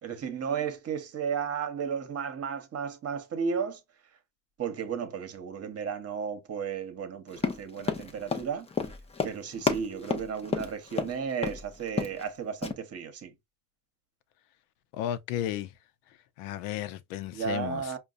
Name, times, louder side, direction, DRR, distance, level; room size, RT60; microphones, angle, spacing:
voice 1, 0.0-3.8 4.6-8.7 9.2-13.3 17.3-18.0, right 6 dB, 35° right, 1.0 m, -34 dB
Run, 7.3-11.1 11.4-11.6 11.9-12.3 12.6-12.7, left 5 dB, 15° left, 0.5 m, -30 dB
voice 2, 14.9-15.7 16.4-17.9, left 12 dB, 85° left, 0.7 m, -33 dB
5.1 x 2.3 x 2.5 m
cardioid pair, 120°, 44 cm